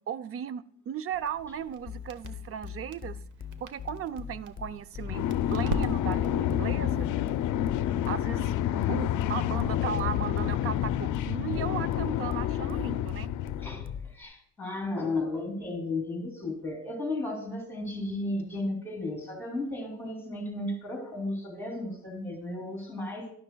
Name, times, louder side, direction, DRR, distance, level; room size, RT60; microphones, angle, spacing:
voice 1, 0.1-3.2 3.6-7.1 8.1-13.3, right 9 dB, 50° right, 0.5 m, -36 dB
Crackle, 1.1-6.4, right 3 dB, 70° right, 1.1 m, -41 dB
sound 1, 1.9-14.2, left 7 dB, 30° left, 0.6 m, -41 dB
sound 2, 5.0-14.0, left 11 dB, 75° left, 0.5 m, -29 dB
voice 2, 13.6-23.3, left 2 dB, 5° left, 2.7 m, -34 dB
12.5 x 11.0 x 2.2 m
cardioid pair, 120°, 31 cm